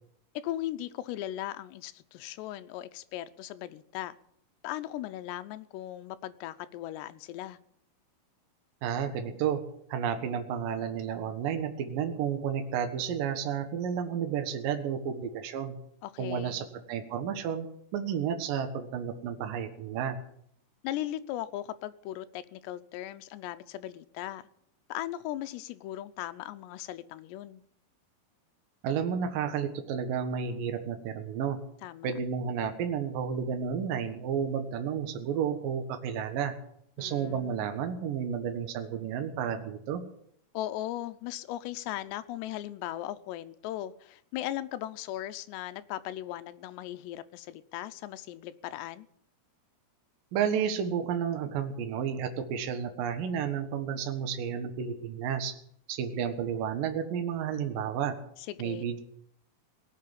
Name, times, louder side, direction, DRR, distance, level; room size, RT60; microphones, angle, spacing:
voice 1, 0.3-4.2 4.6-7.6 16.0-16.7 20.8-24.4 24.9-27.6 31.8-32.1 37.0-37.7 40.5-49.1 58.4-58.8, left 13 dB, 90° left, 12 dB, 2.9 m, -38 dB
voice 2, 8.8-9.6 9.9-15.8 16.2-17.7 17.9-20.2 28.8-31.6 32.0-36.5 37.0-40.0 50.3-55.5 55.9-58.2 58.6-59.0, right 7 dB, 65° right, 6 dB, 2.8 m, -31 dB
18.5 x 7.7 x 9.2 m, 0.69 s
omnidirectional pair, 4.8 m